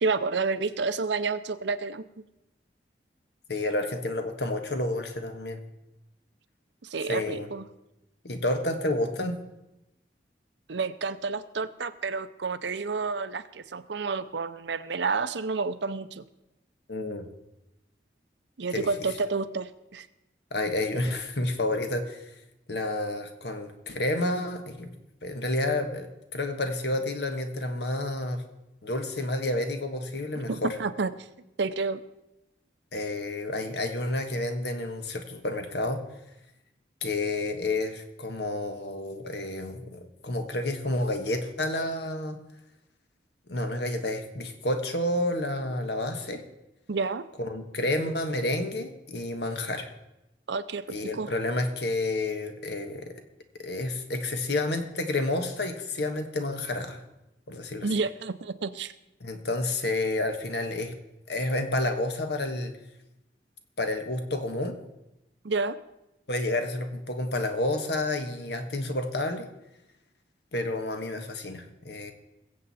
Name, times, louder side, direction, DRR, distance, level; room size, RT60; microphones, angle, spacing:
voice 1, 0.0-2.0 6.8-7.7 10.7-16.2 18.6-20.1 30.5-31.3 31.6-32.0 46.9-47.2 50.5-51.3 57.8-58.9 65.4-65.8, right 4 dB, 85° right, 12 dB, 0.7 m, -30 dB
voice 2, 3.5-5.6 7.1-7.5 8.2-9.4 16.9-17.2 18.7-18.9 20.5-22.2 22.7-24.9 25.2-28.4 28.8-30.7 32.9-36.0 37.0-42.4 43.5-46.4 47.4-49.9 50.9-53.1 53.6-57.0 57.5-57.9 59.2-60.9 61.3-62.7 63.8-64.8 66.3-69.5 70.5-72.1, left 2 dB, 70° left, 6 dB, 1.4 m, -30 dB
21.5 x 7.7 x 4.2 m, 0.91 s
head